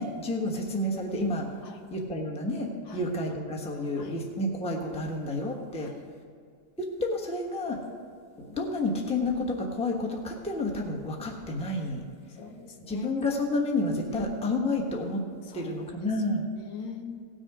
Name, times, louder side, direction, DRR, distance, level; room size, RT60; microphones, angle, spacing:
voice 1, 0.0-1.5 1.9-5.9 6.8-7.8 8.5-12.0 12.9-15.2 15.5-16.4, left 2 dB, 5° left, 0 dB, 0.9 m, -30 dB
voice 2, 12.3-13.1 14.1-14.3 15.4-15.7 16.0-16.1 16.6-17.2, left 5 dB, 85° left, 4 dB, 1.7 m, -41 dB
17.5 x 6.5 x 4.9 m, 2.1 s
omnidirectional pair, 2.0 m